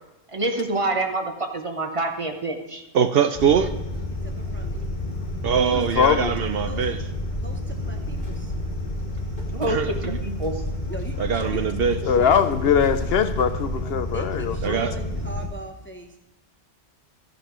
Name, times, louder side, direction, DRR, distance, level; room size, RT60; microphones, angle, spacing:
voice 1, 0.3-2.8 9.5-10.6, right 2 dB, 30° right, 4 dB, 1.0 m, -27 dB
voice 2, 2.9-3.7 5.4-7.0 9.7-10.2 11.2-12.0 14.6-14.9, right 7 dB, 65° right, 10 dB, 0.7 m, -22 dB
sound 1, 3.3-15.5, left 1 dB, 40° left, 1.7 m, -30 dB
voice 3, 4.2-4.9 5.6-5.8 6.6-8.6 10.9-11.6 12.2-12.4 14.1-16.2, equal, 15° left, 4 dB, 0.6 m, -40 dB
voice 4, 5.7-6.4 12.0-14.8, left 7 dB, 65° left, 11 dB, 0.7 m, -22 dB
14.0 x 10.5 x 3.1 m, 0.99 s
omnidirectional pair, 1.2 m